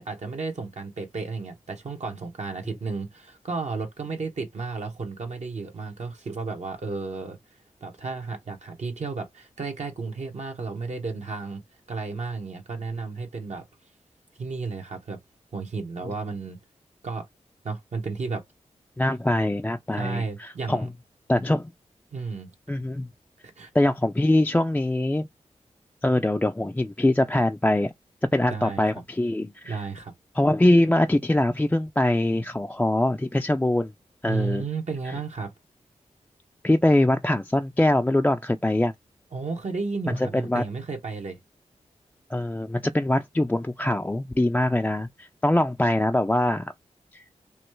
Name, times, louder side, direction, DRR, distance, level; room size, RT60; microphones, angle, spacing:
voice 1, 0.0-7.4 7.8-11.6 11.9-13.6 14.4-15.2 15.5-16.6 17.0-17.2 17.6-18.4 19.9-20.9 22.1-22.5 23.6-23.7 28.5-28.9 29.6-30.1 34.3-35.5 39.3-41.4, right 4 dB, 65° right, 1.1 m, -33 dB
voice 2, 19.0-20.9 21.3-21.7 22.7-23.1 23.7-25.3 26.0-27.9 28.3-29.8 30.4-33.9 34.2-34.6 36.6-38.9 40.1-40.6 42.3-46.7 47.1-47.2, left 1 dB, 10° left, 0.3 m, -23 dB
3.0 x 2.3 x 3.1 m
cardioid pair, 50°, 13 cm